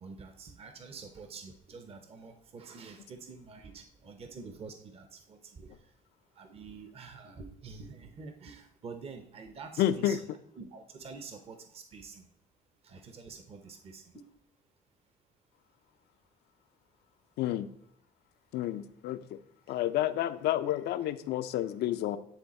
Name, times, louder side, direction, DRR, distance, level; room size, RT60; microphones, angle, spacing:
voice 1, 0.0-5.7 6.4-10.3 10.5-12.2 12.8-14.3, right 4 dB, 35° right, 7 dB, 0.8 m, -47 dB
voice 2, 9.8-10.2 17.4-17.7 18.5-19.4 19.7-22.2, left 12 dB, 75° left, 12 dB, 0.5 m, -30 dB
10.0 x 3.5 x 4.2 m, 0.74 s
cardioid pair, 110°, 17 cm